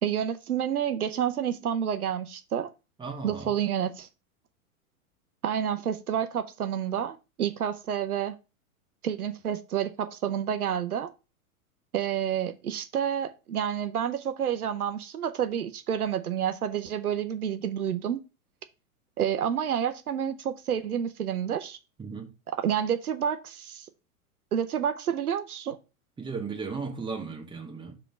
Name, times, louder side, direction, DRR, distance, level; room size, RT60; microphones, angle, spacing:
voice 1, 0.0-2.7 3.2-4.1 5.4-8.3 9.0-11.1 11.9-18.2 19.2-21.8 22.6-23.9 24.5-25.8, right 9 dB, 80° right, 0.8 m, -29 dB
voice 2, 3.0-3.5 22.0-22.3 26.2-27.9, right 4 dB, 10° right, 1.4 m, -35 dB
5.0 x 3.7 x 5.7 m
hypercardioid pair, 105°, 44 cm